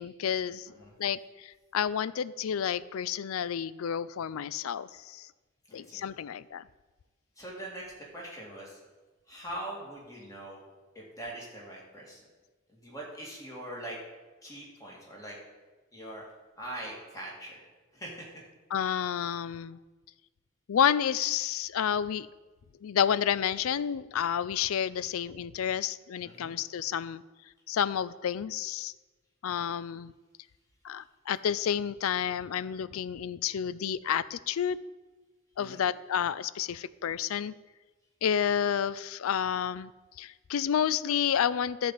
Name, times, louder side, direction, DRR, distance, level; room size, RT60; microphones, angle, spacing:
voice 1, 0.0-0.7 1.0-5.3 5.7-6.6 18.7-19.8 20.7-22.3 22.8-27.2 27.7-28.9 29.4-30.1 30.8-34.8 35.6-37.5 38.2-39.9 40.2-41.9, left 8 dB, 85° left, 18 dB, 0.4 m, -30 dB
voice 2, 5.7-6.0 7.4-8.8 9.3-10.6 10.9-12.2 12.7-14.0 14.4-15.4 15.9-16.2 16.6-17.6 17.9-18.4 26.2-26.6 35.6-35.8, right 1 dB, 15° left, -3 dB, 2.2 m, -42 dB
11.5 x 4.2 x 7.8 m, 1.2 s
head